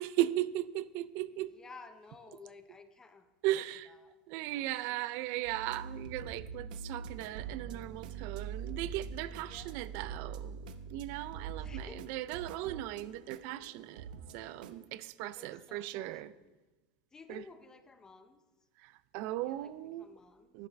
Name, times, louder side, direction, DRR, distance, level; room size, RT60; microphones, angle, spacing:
voice 1, 0.0-1.5 3.4-3.9 4.3-14.1 14.3-16.3 17.3-17.4 18.8-20.1 20.5-20.7, right 15 dB, 50° right, 0.4 m, -37 dB
voice 2, 1.5-3.3 3.5-3.6 3.9-4.2 4.5-4.7 9.4-10.1 10.6-10.7 11.6-12.0 15.3-16.5 17.1-18.4 19.2-19.7 20.0-20.5, left 4 dB, 15° left, 0.6 m, -54 dB
sound 1, 5.4-14.8, right 6 dB, 85° right, 0.7 m, -44 dB
11.0 x 10.5 x 3.4 m
supercardioid pair, 150°, 4 cm